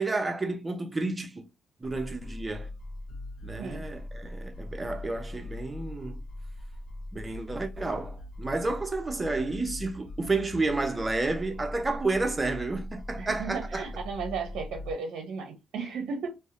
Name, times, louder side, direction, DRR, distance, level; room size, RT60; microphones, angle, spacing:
voice 1, 0.0-1.5 1.8-2.7 3.4-6.2 7.1-13.9, right 3 dB, 20° right, 0.5 m, -31 dB
sound 1, 1.8-14.9, left 1 dB, 50° left, 0.6 m, -41 dB
voice 2, 13.2-16.3, right 5 dB, 75° right, 0.5 m, -35 dB
2.7 x 2.0 x 2.4 m
cardioid pair, 90°, 0 cm